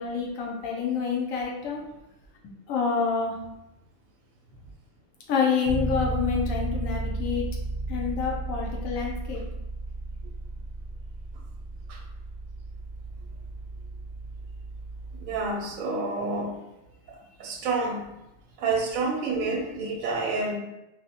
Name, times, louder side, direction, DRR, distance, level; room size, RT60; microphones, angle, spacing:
voice 1, 0.0-1.8 2.7-3.4 5.3-7.5 7.9-9.4, left 6 dB, 85° left, -1 dB, 1.0 m, -27 dB
Bass guitar, 5.7-15.5, right 2 dB, 65° left, 0.5 m, -34 dB
voice 2, 15.2-16.6 17.1-18.1 18.6-20.6, right 3 dB, 85° right, 1 dB, 1.0 m, -29 dB
2.6 x 2.1 x 2.8 m, 0.91 s
omnidirectional pair, 1.4 m